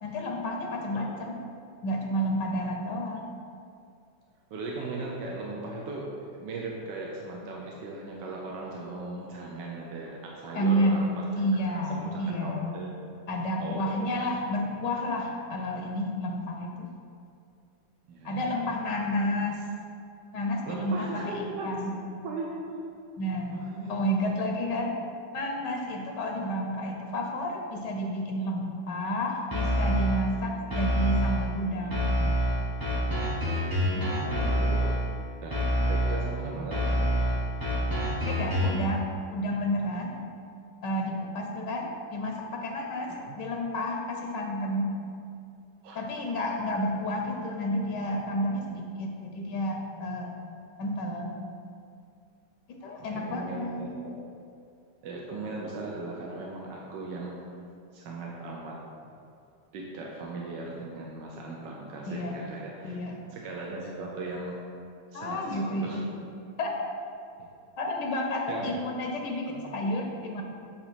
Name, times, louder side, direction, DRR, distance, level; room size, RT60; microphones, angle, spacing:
voice 1, 0.0-1.4 1.8-3.3 10.5-11.1 11.4-12.7 13.3-16.9 18.2-19.6 20.3-21.9 23.2-23.5 23.9-24.9 25.3-32.2 33.8-34.3 38.2-39.1 39.3-40.1 40.8-45.0 45.9-50.3 50.8-51.3 52.7-54.0 62.1-62.3 62.8-63.2 65.1-66.1 66.6-66.7 67.8-70.4, equal, 75° left, 2 dB, 1.3 m, -30 dB
voice 2, 4.5-11.4 11.7-13.0 13.6-14.1 18.1-18.4 20.6-21.8 22.2-22.8 23.5-24.2 34.2-34.8 35.4-37.1 43.2-43.4 45.8-46.0 53.0-54.2 55.0-57.5 57.9-58.9 59.7-63.0 63.3-64.7 65.1-66.0 68.5-68.8 69.5-69.6, right 2 dB, 75° right, -2 dB, 1.4 m, -38 dB
sound 1, 29.5-30.3 30.7-31.5 31.9-35.1 35.5-36.3 36.7-38.9, equal, 25° right, 0.5 m, -27 dB
8.9 x 3.1 x 5.7 m, 2.4 s
omnidirectional pair, 2.0 m